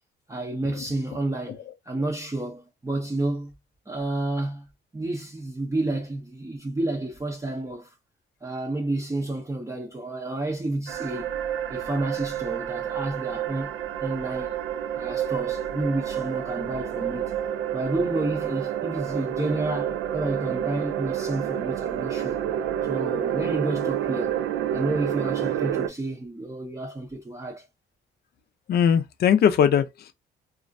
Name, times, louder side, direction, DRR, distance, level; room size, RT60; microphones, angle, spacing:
voice 1, 0.3-3.5 3.9-4.7 4.9-7.9 8.4-11.3 11.7-13.7 14.0-14.6 14.9-17.3 17.7-22.4 22.8-24.4 24.7-27.7, right 2 dB, 15° right, 0.6 m, -30 dB
sound 1, 10.9-25.9, right 10 dB, 90° right, 0.4 m, -29 dB
voice 2, 28.7-30.1, left 8 dB, 55° left, 0.5 m, -20 dB
2.4 x 2.0 x 2.5 m
cardioid pair, 90°, 20 cm